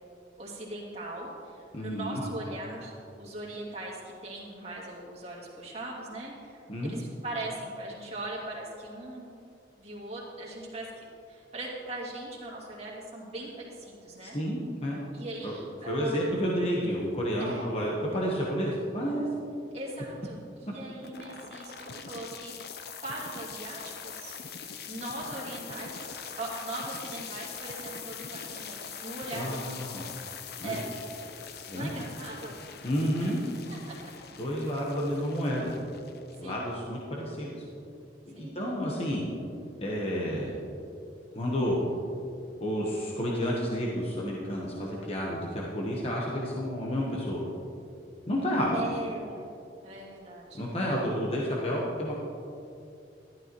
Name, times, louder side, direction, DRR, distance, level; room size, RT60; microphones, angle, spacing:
voice 1, 0.4-2.9 3.2-9.4 9.8-14.4 15.1-16.4 17.4-17.7 19.7-22.6 23.0-24.4 24.8-29.8 30.6-30.9 31.7-32.6 33.2-33.3 33.7-34.1 36.4-36.7 38.3-38.6 40.1-40.2 48.7-49.5 49.8-50.8, right 2 dB, 35° right, -5 dB, 2.4 m, -40 dB
voice 2, 1.7-2.2 6.7-6.9 14.2-15.0 15.4-15.5 15.9-19.3 29.3-30.0 30.6-30.8 31.7-31.9 32.8-33.4 34.4-35.7 36.4-37.6 38.3-39.3 39.8-40.6 41.3-41.8 42.6-47.4 48.3-48.7 50.5-52.2, equal, 35° left, -3 dB, 1.1 m, -30 dB
sound 1, 21.0-37.0, left 6 dB, 60° left, 0.7 m, -43 dB
13.0 x 12.0 x 3.1 m, 2.6 s
head